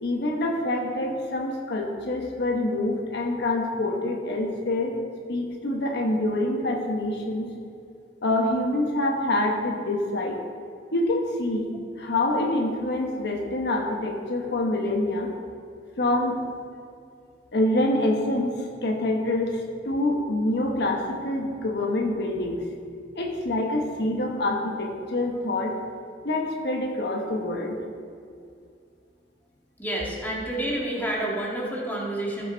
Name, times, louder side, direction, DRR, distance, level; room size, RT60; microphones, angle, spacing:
voice 1, 0.0-5.0 5.3-7.5 8.2-10.4 10.9-11.7 12.0-15.3 16.0-16.4 17.5-22.6 23.1-25.8 26.2-27.8, left 1 dB, 65° left, 1 dB, 1.1 m, -26 dB
voice 2, 29.8-32.5, right 1 dB, 10° left, -4 dB, 2.0 m, -29 dB
14.0 x 6.8 x 4.0 m, 2.4 s
head